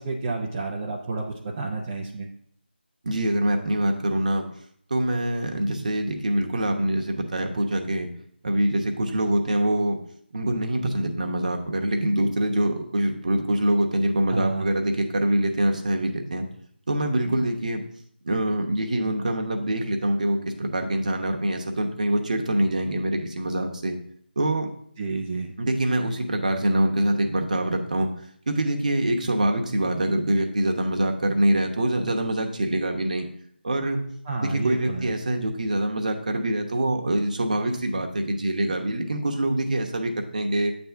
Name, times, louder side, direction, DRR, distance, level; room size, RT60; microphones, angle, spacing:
voice 1, 0.0-2.3 14.3-14.7 25.0-25.5 34.2-35.1, right 3 dB, 15° right, -3 dB, 0.4 m, -30 dB
voice 2, 3.0-4.5 4.9-8.1 8.4-10.0 10.3-16.5 16.9-17.8 18.2-24.0 24.4-24.7 25.6-28.1 28.5-33.3 33.6-34.0 34.4-40.7, right 1 dB, 40° right, 3 dB, 0.9 m, -24 dB
8.4 x 3.5 x 5.6 m, 0.67 s
figure-of-eight pair, 170°, 6 cm